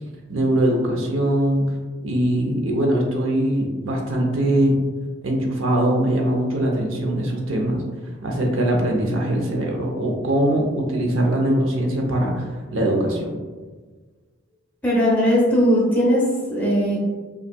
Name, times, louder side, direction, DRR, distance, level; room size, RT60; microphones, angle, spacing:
voice 1, 0.3-1.6 2.0-4.7 5.2-13.3, right 1 dB, 75° right, 0 dB, 0.7 m, -22 dB
voice 2, 14.8-17.0, equal, 10° left, -6 dB, 0.8 m, -19 dB
5.3 x 2.4 x 2.2 m, 1.4 s
head